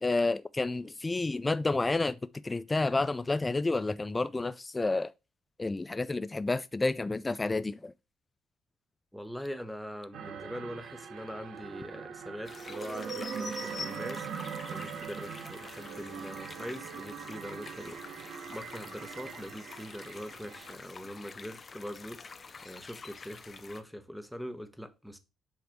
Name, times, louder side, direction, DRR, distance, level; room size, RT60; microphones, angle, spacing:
voice 1, 0.0-2.2 2.4-5.1 5.6-7.9, left 3 dB, 20° left, 0.3 m, -30 dB
voice 2, 9.1-25.2, equal, ahead, 1.0 m, -43 dB
sound 1, 10.1-20.7, right 7 dB, 65° right, 0.8 m, -42 dB
sound 2, 12.4-23.8, left 4 dB, 40° left, 0.7 m, -47 dB
7.7 x 3.3 x 4.5 m
supercardioid pair, 65°, 0 cm